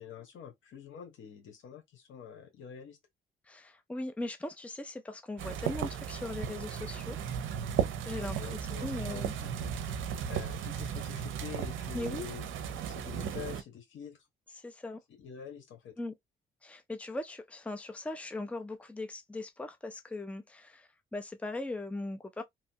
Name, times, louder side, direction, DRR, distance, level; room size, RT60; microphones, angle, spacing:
voice 1, 0.0-3.0 8.1-9.7 10.3-12.5 12.9-14.2 15.2-15.9, left 8 dB, 75° left, 1.1 m, -46 dB
voice 2, 3.5-7.2 8.1-8.4 8.8-9.3 11.9-12.3 14.5-15.0 16.0-16.1 16.6-22.4, left 2 dB, 5° left, 0.5 m, -39 dB
sound 1, 5.4-13.6, right 8 dB, 80° right, 0.6 m, -35 dB
2.9 x 2.2 x 2.7 m
cardioid pair, 90°, 20 cm